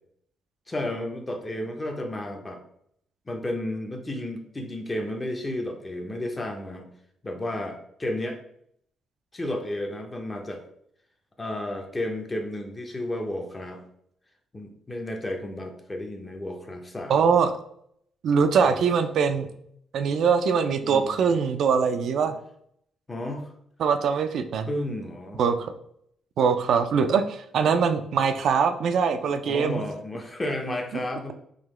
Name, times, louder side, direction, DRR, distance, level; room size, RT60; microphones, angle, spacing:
voice 1, 0.7-2.6 3.3-6.9 7.2-8.4 9.3-10.6 11.4-13.8 14.5-17.3 18.6-18.9 20.8-21.4 22.2-22.3 23.1-23.5 24.7-25.4 29.4-31.3, left 1 dB, 20° left, 3 dB, 0.7 m, -32 dB
voice 2, 17.1-17.5 18.2-19.5 19.9-22.4 23.8-24.7 25.4-25.7 26.4-29.8, right 6 dB, 70° right, 7 dB, 0.3 m, -22 dB
3.7 x 2.8 x 3.1 m, 0.70 s
cardioid pair, 90°, 0 cm